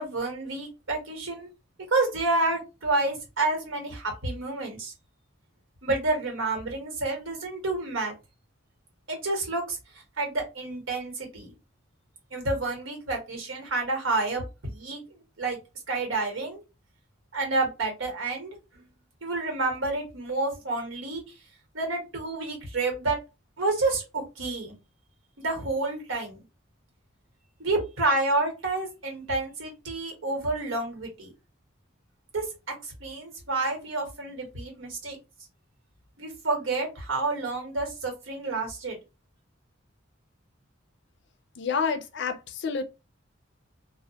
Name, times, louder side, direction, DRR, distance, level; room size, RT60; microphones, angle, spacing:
voice 1, 0.0-1.5 1.9-4.9 5.8-8.1 9.1-9.8 10.2-11.5 12.3-15.0 15.4-15.6 15.9-16.6 17.3-18.8 19.2-21.2 21.7-23.2 23.6-24.8 25.4-26.4 27.6-31.3 32.3-35.2 36.2-39.0, right 2 dB, 85° right, 1.1 m, -29 dB
voice 2, 41.6-42.8, left 5 dB, 60° left, 0.4 m, -29 dB
2.2 x 2.0 x 2.7 m
head